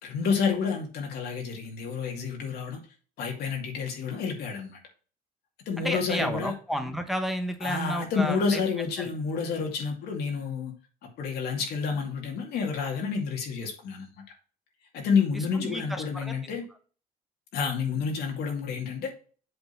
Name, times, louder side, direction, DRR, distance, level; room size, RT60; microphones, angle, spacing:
voice 1, 0.0-2.8 3.2-4.8 5.7-6.5 7.6-10.7 11.2-14.1 14.9-16.6 17.5-19.1, left 5 dB, 75° left, 2 dB, 2.4 m, -29 dB
voice 2, 5.8-8.6 9.0-9.1 15.3-16.3, equal, ahead, 6 dB, 1.0 m, -31 dB
7.9 x 3.6 x 5.8 m, 0.38 s
cardioid pair, 110°, 17 cm